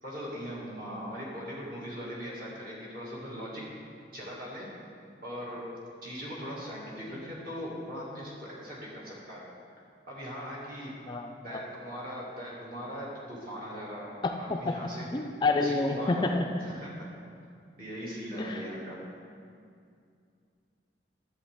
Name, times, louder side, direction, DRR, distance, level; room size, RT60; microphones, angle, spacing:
voice 1, 0.0-3.6 4.1-4.7 5.2-5.7 6.0-9.4 10.1-10.9 11.4-15.1 15.6-16.3 16.6-17.1 17.8-19.0, equal, 50° right, -6 dB, 2.2 m, -40 dB
voice 2, 11.1-11.7 14.5-14.7 15.1-16.6 18.4-18.6, left 3 dB, 25° left, 4 dB, 0.3 m, -29 dB
11.0 x 7.7 x 3.6 m, 2.4 s
head